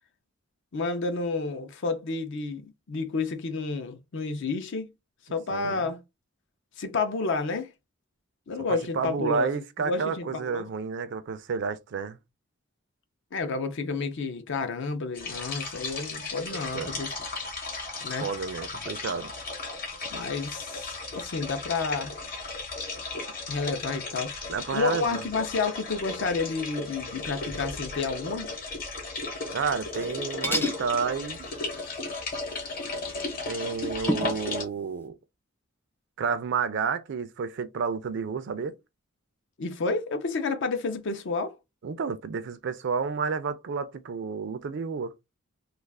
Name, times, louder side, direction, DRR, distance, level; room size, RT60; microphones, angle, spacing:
voice 1, 0.7-4.9 5.3-6.0 6.8-7.7 8.5-9.5 9.8-10.7 13.3-17.1 18.0-18.3 20.1-22.2 23.5-24.4 24.7-28.5 39.6-41.6, left 4 dB, 65° left, 0.5 m, -30 dB
voice 2, 5.5-5.8 8.6-12.2 16.5-17.0 18.2-19.3 24.5-25.3 29.5-31.5 33.5-35.1 36.2-38.7 41.8-45.1, right 5 dB, 60° right, 0.4 m, -30 dB
sound 1, 15.1-34.6, left 3 dB, 45° left, 1.0 m, -35 dB
sound 2, 29.8-30.2 30.4-30.8 33.0-33.1 34.1-34.4, equal, 10° left, 0.5 m, -29 dB
2.4 x 2.3 x 3.3 m
head